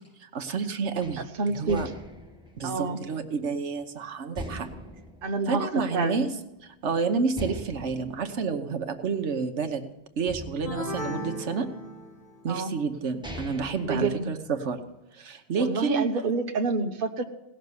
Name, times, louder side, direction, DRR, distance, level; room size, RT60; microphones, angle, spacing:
voice 1, 0.2-1.9 2.6-4.7 5.5-6.3 6.6-9.8 10.2-11.7 12.4-14.8 15.1-16.1, right 5 dB, 85° right, 7 dB, 1.3 m, -29 dB
sound 1, 1.0-3.8 4.3-6.3 6.6-6.7 7.3-9.7 10.3-11.8 12.6-12.7 13.0-14.8, equal, 5° right, 1.2 m, -42 dB
voice 2, 1.2-1.8 2.6-3.0 5.2-6.3 12.5-12.8 13.8-14.3 15.6-17.2, right 3 dB, 55° right, 5 dB, 1.1 m, -28 dB
sound 2, 10.6-12.5, left 1 dB, 50° left, 1.9 m, -36 dB
17.5 x 6.6 x 9.6 m, 0.94 s
omnidirectional pair, 1.2 m